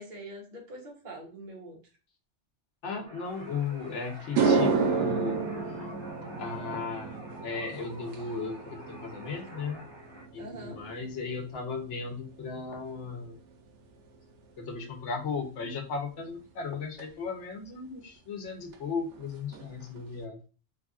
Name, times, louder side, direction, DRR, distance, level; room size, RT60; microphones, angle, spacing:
voice 1, 0.0-1.8 10.4-10.8, right 1 dB, 45° right, -2 dB, 1.1 m, -43 dB
voice 2, 2.8-5.5 6.4-9.8 10.3-13.4 14.6-20.4, left 4 dB, 80° left, 4 dB, 1.1 m, -36 dB
sound 1, 3.1-10.2, right 1 dB, 30° right, 0.7 m, -48 dB
sound 2, 3.6-3.7 4.2-12.7 13.0-13.4 17.0-17.1 18.7-18.8 19.1-19.3 19.5-20.1, right 4 dB, 85° right, 0.9 m, -31 dB
3.4 x 2.5 x 2.4 m, 0.35 s
omnidirectional pair, 1.2 m